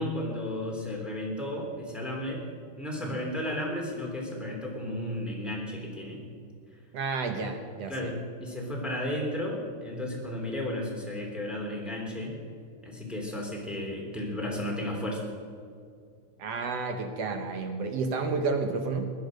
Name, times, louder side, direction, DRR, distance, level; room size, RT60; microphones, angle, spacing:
voice 1, 0.0-2.4 2.8-6.2 7.9-12.4 12.8-15.2, left 1 dB, ahead, -2 dB, 2.7 m, -33 dB
voice 2, 6.9-8.1 16.4-19.1, right 4 dB, 65° right, 5 dB, 1.7 m, -31 dB
21.0 x 10.5 x 6.4 m, 2.2 s
omnidirectional pair, 3.8 m